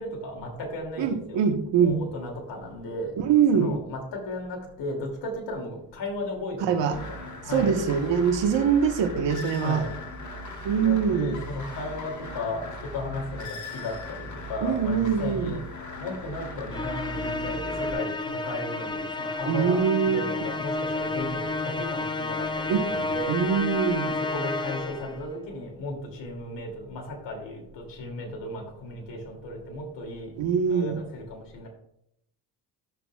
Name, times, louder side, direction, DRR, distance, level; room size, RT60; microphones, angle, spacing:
voice 1, 0.0-1.4 1.8-3.1 3.5-7.7 9.6-10.1 10.8-15.6 16.0-23.4 24.2-30.3 30.7-31.7, left 2 dB, 75° left, 0 dB, 2.8 m, -35 dB
voice 2, 1.0-2.0 3.2-3.8 6.7-7.0 7.5-9.8 10.6-11.4 14.6-15.5 19.4-20.2 22.7-24.2 30.4-31.0, right 7 dB, 75° right, 6 dB, 1.4 m, -23 dB
sound 1, 6.9-17.9, left 1 dB, 40° left, 1.7 m, -39 dB
Musical instrument, 16.7-25.2, left 2 dB, 10° left, 0.8 m, -31 dB
14.0 x 6.8 x 2.4 m, 0.74 s
cardioid pair, 70°, 43 cm